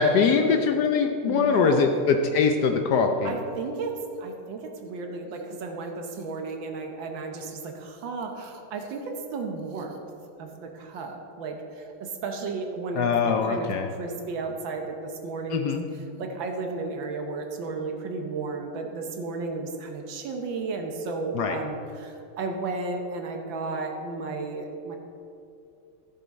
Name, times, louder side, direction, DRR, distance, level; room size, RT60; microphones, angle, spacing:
voice 1, 0.0-3.3 13.0-13.9 15.5-15.8 21.3-21.6, left 5 dB, 80° left, 5 dB, 0.9 m, -22 dB
voice 2, 1.2-1.9 3.2-10.0 10.4-25.0, right 3 dB, 65° right, 3 dB, 1.5 m, -34 dB
14.5 x 6.9 x 4.1 m, 2.7 s
omnidirectional pair, 2.4 m